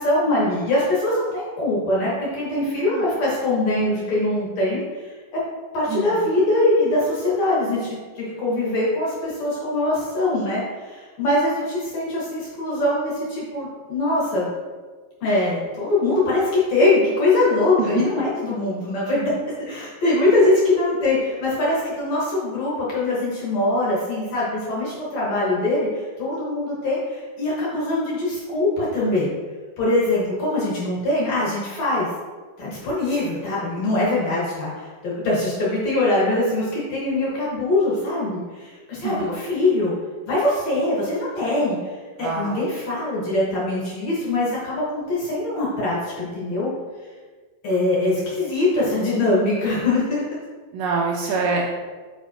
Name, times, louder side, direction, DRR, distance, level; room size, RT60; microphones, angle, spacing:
voice 1, 0.0-5.4 5.7-14.5 15.2-19.3 19.7-29.4 29.8-32.1 32.6-39.9 40.3-46.7 47.6-50.2 51.2-51.4, left 2 dB, 55° left, -7 dB, 2.4 m, -22 dB
voice 2, 5.9-6.3 17.8-18.0 39.0-39.4 42.2-42.6 48.0-48.2 50.7-51.7, right 4 dB, 80° right, 0 dB, 2.1 m, -25 dB
8.3 x 5.4 x 2.9 m, 1.4 s
omnidirectional pair, 4.4 m